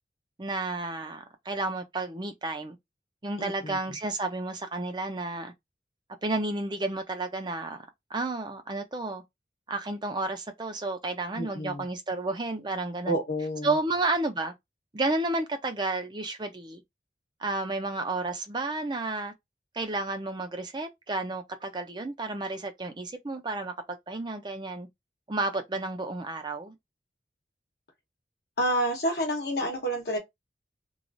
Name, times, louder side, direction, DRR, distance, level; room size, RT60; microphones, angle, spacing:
voice 1, 0.4-2.8 3.2-5.5 6.2-9.2 9.7-13.2 13.6-14.5 14.9-16.8 17.4-19.3 19.7-24.9 25.3-26.7, right 2 dB, 25° right, 0.5 m, -31 dB
voice 2, 3.4-3.8 11.3-11.8 13.1-13.7 28.6-30.2, equal, 60° left, 0.9 m, -29 dB
3.1 x 2.4 x 2.5 m
head